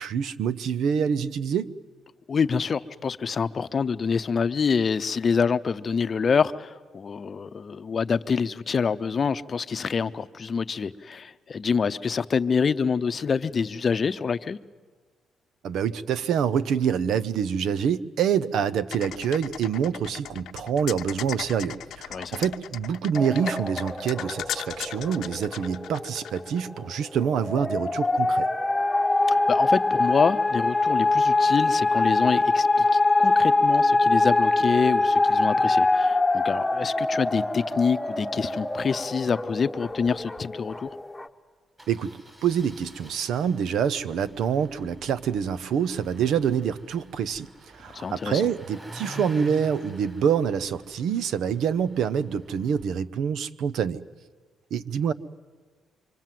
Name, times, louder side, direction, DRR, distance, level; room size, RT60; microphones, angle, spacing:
voice 1, 0.0-1.7 15.6-28.5 41.9-47.5 47.8-54.0 54.7-55.1, right 7 dB, 75° right, 15 dB, 0.8 m, -26 dB
voice 2, 2.3-14.6 22.1-22.4 29.3-41.0 47.9-48.4, left 5 dB, 40° left, 12 dB, 0.7 m, -26 dB
sound 1, 18.9-26.6, left 11 dB, 75° left, 0.8 m, -37 dB
sound 2, 23.1-41.3, left 2 dB, 10° left, 1.2 m, -24 dB
Engine starting, 40.4-40.5 40.7-40.9 41.8-52.8, equal, 20° right, 7.5 m, -47 dB
26.5 x 24.5 x 7.7 m, 1.4 s
cardioid pair, 90°, 0 cm